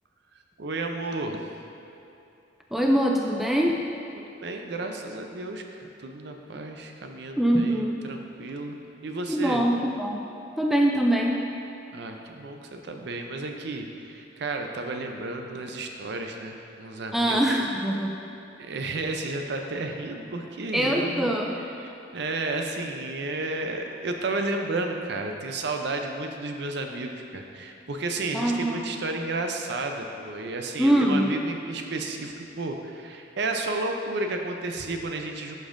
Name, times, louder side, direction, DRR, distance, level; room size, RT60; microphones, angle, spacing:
voice 1, 0.6-1.4 4.2-8.8 9.0-9.6 11.9-17.6 18.6-21.3 21.8-35.5, right 2 dB, 60° right, 4 dB, 0.6 m, -32 dB
voice 2, 2.7-3.8 7.4-8.0 9.3-10.2 10.6-11.4 17.1-18.1 20.7-21.6 28.3-28.8 30.8-31.3, right 1 dB, ahead, 0 dB, 0.3 m, -23 dB
11.0 x 5.3 x 2.6 m, 2.8 s
head